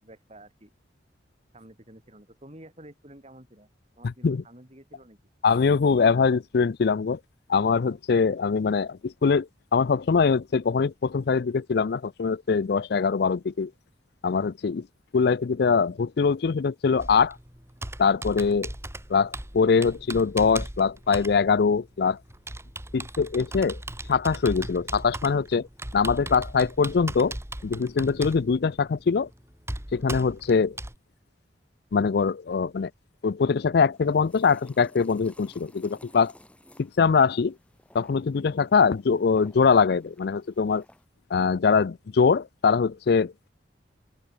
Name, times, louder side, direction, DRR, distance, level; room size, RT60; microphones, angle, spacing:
voice 1, 0.0-0.7 1.5-3.7 4.0-5.2, right 1 dB, 35° right, 7.1 m, -50 dB
voice 2, 4.0-4.4 5.4-7.2 7.5-13.7 14.2-14.9 15.1-17.4 18.0-18.7 19.1-22.2 22.9-23.8 24.1-25.7 25.9-27.4 27.6-29.3 29.9-30.8 31.9-32.9 33.2-36.3 36.8-37.5 37.9-40.8 41.3-43.3, left 5 dB, 60° left, 0.4 m, -23 dB
Computer keyboard, 17.0-31.0, right 1 dB, 15° right, 2.9 m, -38 dB
sound 1, 33.9-41.1, left 1 dB, 5° left, 7.6 m, -55 dB
open air
head